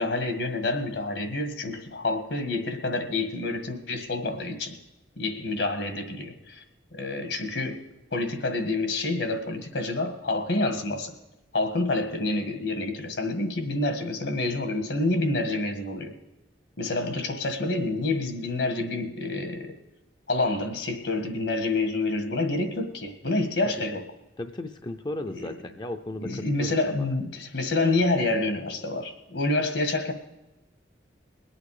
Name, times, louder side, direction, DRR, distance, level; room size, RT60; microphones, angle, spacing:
voice 1, 0.0-4.8 5.2-6.6 6.9-7.8 8.1-11.1 11.5-16.1 16.8-19.8 20.3-24.1 25.3-25.6 26.2-30.1, left 2 dB, 75° left, 7 dB, 1.7 m, -28 dB
voice 2, 24.4-26.7, left 1 dB, 25° left, 7 dB, 0.5 m, -35 dB
21.5 x 8.7 x 4.9 m, 0.99 s
head